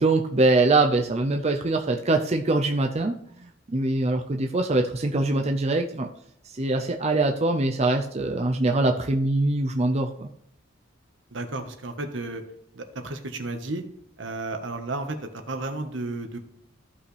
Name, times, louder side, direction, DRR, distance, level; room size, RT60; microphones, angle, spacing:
voice 1, 0.0-6.1 6.4-10.3, right 2 dB, 35° right, 3 dB, 0.6 m, -23 dB
voice 2, 11.3-12.4 12.7-13.8 14.2-16.4, right 2 dB, 70° right, 6 dB, 1.3 m, -33 dB
15.0 x 5.5 x 3.3 m, 0.74 s
head